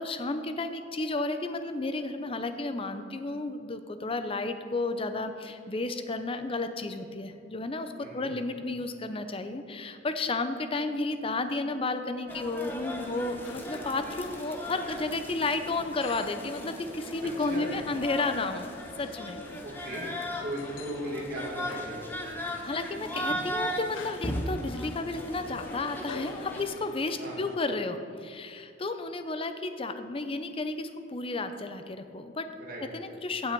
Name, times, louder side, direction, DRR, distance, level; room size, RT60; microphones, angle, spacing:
voice 1, 0.0-18.7 19.0-19.4 22.6-32.5 32.8-33.5, left 3 dB, 30° left, 9 dB, 0.6 m, -32 dB
voice 2, 8.0-8.3 17.2-17.7 19.6-20.1 20.4-22.5 27.2-27.4 32.6-33.1, equal, 45° right, -5 dB, 2.3 m, -38 dB
sound 1, 12.3-26.6, equal, 10° left, 1.0 m, -38 dB
sound 2, 12.8-27.6, left 4 dB, 80° left, 0.6 m, -47 dB
16.0 x 6.4 x 4.6 m, 2.4 s
head